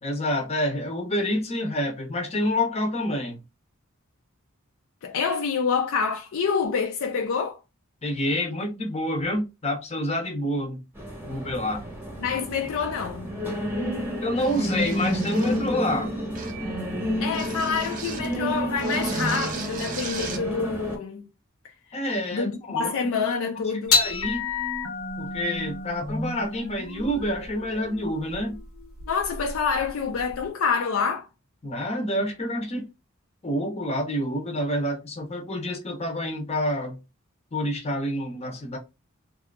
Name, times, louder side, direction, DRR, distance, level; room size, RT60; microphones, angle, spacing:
voice 1, 0.0-3.4 8.0-10.8 11.2-11.8 14.2-16.1 21.9-22.9 23.9-24.5 25.2-28.6 31.6-32.9 33.4-37.0 37.5-38.8, left 1 dB, 30° left, 0.7 m, -28 dB
voice 2, 5.0-7.6 12.2-13.3 17.2-21.3 22.3-24.0 29.1-31.3, left 5 dB, 65° left, 0.4 m, -27 dB
sound 1, 11.0-21.0, equal, 10° right, 0.9 m, -30 dB
sound 2, 14.4-15.7 16.3-16.7 17.3-18.3 18.8-20.5, right 5 dB, 40° right, 0.5 m, -38 dB
sound 3, 23.9-30.4, left 4 dB, 85° left, 0.9 m, -30 dB
2.7 x 2.4 x 2.2 m
head